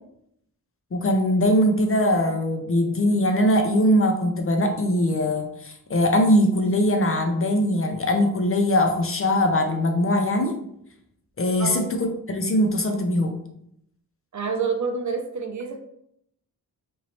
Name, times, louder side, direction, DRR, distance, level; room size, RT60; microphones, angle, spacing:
voice 1, 0.9-10.6 11.4-13.4, left 1 dB, 40° left, 5 dB, 0.4 m, -21 dB
voice 2, 14.3-15.8, right 5 dB, 50° right, 5 dB, 0.5 m, -27 dB
3.0 x 2.6 x 2.8 m, 0.74 s
wide cardioid pair, 90°, 37 cm